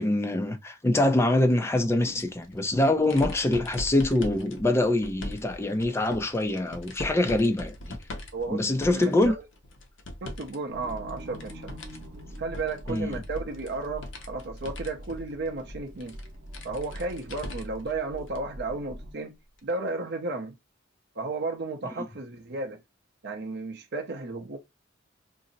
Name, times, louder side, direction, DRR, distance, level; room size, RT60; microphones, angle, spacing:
voice 1, 0.0-8.0 8.5-9.3 12.9-13.2, left 1 dB, 15° left, 0.4 m, -24 dB
sound 1, 2.1-10.6 10.9-17.9 18.3-18.4 19.6-19.7, left 1 dB, 70° left, 0.7 m, -41 dB
voice 2, 8.3-8.6 8.9-9.4 10.2-11.8 12.4-16.2 16.6-19.4 19.6-20.5 21.2-22.8 23.2-24.6, right 3 dB, 60° right, 0.6 m, -33 dB
sound 2, 10.7-19.1, equal, 80° right, 0.9 m, -44 dB
2.6 x 2.0 x 3.8 m
head